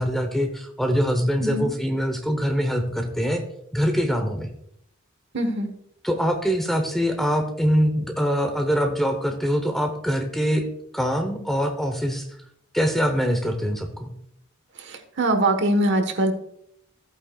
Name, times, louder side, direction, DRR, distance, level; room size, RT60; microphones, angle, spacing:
voice 1, 0.0-3.4 3.7-4.5 6.0-10.7 10.9-12.3 12.7-14.1, equal, ahead, 5 dB, 0.9 m, -23 dB
voice 2, 5.3-5.7 14.8-16.3, right 1 dB, 55° right, 6 dB, 1.3 m, -22 dB
14.0 x 8.9 x 2.4 m, 0.73 s
head